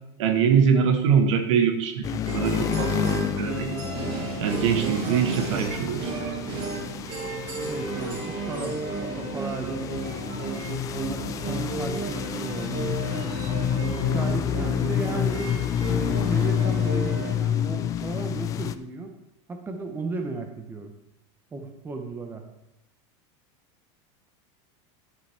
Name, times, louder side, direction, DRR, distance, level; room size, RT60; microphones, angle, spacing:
voice 1, 0.2-3.7 4.4-6.4, right 7 dB, 80° right, 7 dB, 1.4 m, -23 dB
sound 1, 2.0-18.8, left 10 dB, 20° left, 0.3 m, -29 dB
sound 2, 2.3-17.4, right 3 dB, 35° right, 2.1 m, -33 dB
voice 2, 7.7-9.9 11.0-13.3 13.9-15.6 15.9-19.1 19.5-20.9 21.5-22.4, right 3 dB, 15° right, 5 dB, 0.9 m, -35 dB
11.0 x 7.4 x 3.5 m, 0.91 s
supercardioid pair, 155°, 15 cm